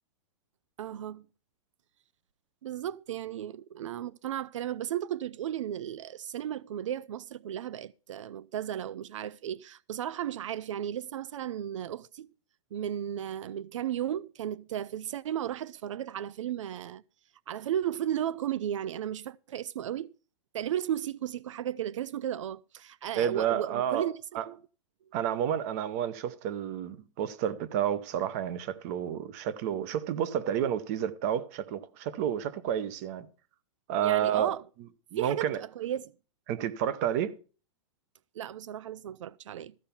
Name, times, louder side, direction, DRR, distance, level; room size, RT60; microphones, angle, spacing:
voice 1, 0.8-1.3 2.6-12.3 12.7-17.0 17.5-20.1 20.5-24.1 24.5-24.6 34.0-34.6 35.2-36.1 38.3-39.7, right 10 dB, 75° right, 0.5 m, -34 dB
voice 2, 23.2-24.1 24.3-24.4 25.1-33.3 33.9-34.5 35.1-35.6 36.5-37.3, right 9 dB, 30° right, 0.8 m, -30 dB
14.0 x 5.8 x 6.9 m
supercardioid pair, 175°, 16 cm